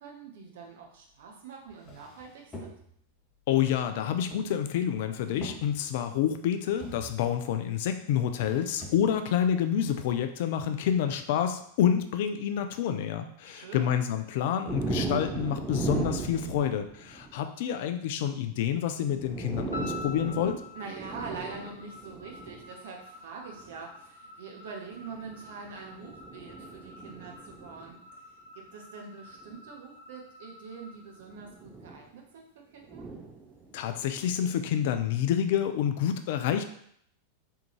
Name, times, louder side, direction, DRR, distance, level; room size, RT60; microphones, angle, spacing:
voice 1, 0.0-2.7 13.4-14.0 20.7-28.2 28.5-33.0, right 5 dB, 55° right, 1 dB, 0.9 m, -44 dB
sound 1, 1.2-1.3 1.7-3.1 4.2-5.0 5.2-6.1 6.7-7.3 8.3-9.3 9.9-10.0, left 1 dB, 20° left, 0.9 m, -46 dB
voice 2, 3.5-20.6 33.7-36.6, left 9 dB, 50° left, 8 dB, 0.4 m, -28 dB
sound 2, 14.7-17.4 18.7-18.8 19.1-22.7 23.6-23.8 25.0-27.9 29.4-29.6 31.3-32.0 32.8-34.3, right 3 dB, 15° right, 0.5 m, -37 dB
sound 3, 19.7-32.0, left 3 dB, 85° right, 0.8 m, -48 dB
3.6 x 3.5 x 3.0 m, 0.67 s
figure-of-eight pair, 90°, 0 cm